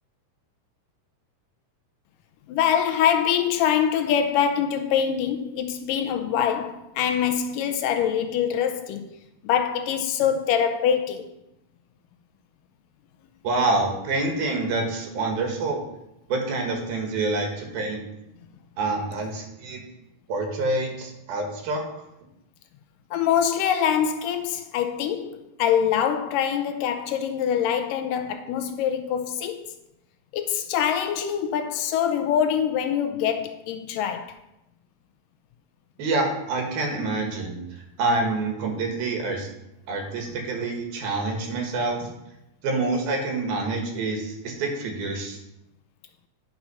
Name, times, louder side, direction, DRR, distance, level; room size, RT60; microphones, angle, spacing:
voice 1, 2.5-9.1 9.4-11.3 23.1-29.6 30.3-34.4, left 8 dB, 80° left, 2.1 m, -24 dB
voice 2, 13.4-15.8 16.3-18.0 18.8-19.8 20.3-21.8 36.0-37.6 38.0-39.5 39.9-42.1 42.6-45.4, right 2 dB, 85° right, 3.6 m, -27 dB
10.0 x 5.9 x 5.7 m
omnidirectional pair, 4.2 m